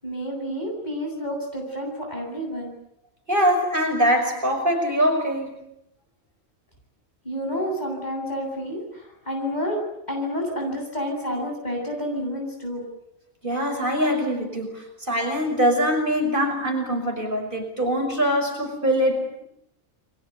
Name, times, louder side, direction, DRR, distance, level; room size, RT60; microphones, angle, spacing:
voice 1, 0.0-2.8 7.2-9.8 10.1-12.8, equal, 35° left, 1 dB, 8.1 m, -29 dB
voice 2, 3.3-5.6 13.4-19.4, equal, 40° right, 3 dB, 6.4 m, -23 dB
29.5 x 23.0 x 8.2 m, 0.80 s
omnidirectional pair, 1.3 m